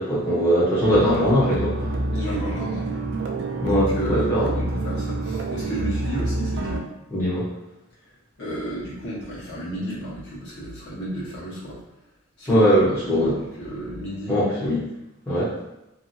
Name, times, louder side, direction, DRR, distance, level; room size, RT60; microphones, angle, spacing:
voice 1, 0.0-2.0 3.6-4.5 7.1-7.4 12.5-13.3 14.3-14.8 15.3-15.5, equal, 10° left, -11 dB, 0.7 m, -20 dB
sound 1, 0.8-6.8, right 2 dB, 50° right, 0.3 m, -27 dB
voice 2, 2.1-3.0 3.6-6.8 8.4-11.8 12.4-14.3, equal, 55° left, -8 dB, 1.1 m, -32 dB
2.6 x 2.4 x 2.6 m, 0.91 s
head